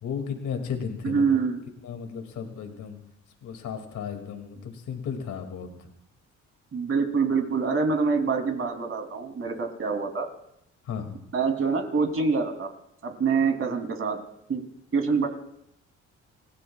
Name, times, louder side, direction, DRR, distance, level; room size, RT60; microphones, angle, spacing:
voice 1, 0.0-1.2 1.8-3.0 3.4-5.9 10.8-11.2, left 7 dB, 75° left, 4 dB, 2.4 m, -34 dB
voice 2, 1.0-1.6 6.7-10.3 11.3-12.7 13.0-14.2 14.5-14.6 14.9-15.3, right 5 dB, 45° right, 4 dB, 3.1 m, -25 dB
29.5 x 17.0 x 2.4 m, 0.76 s
cardioid pair, 90°, 30 cm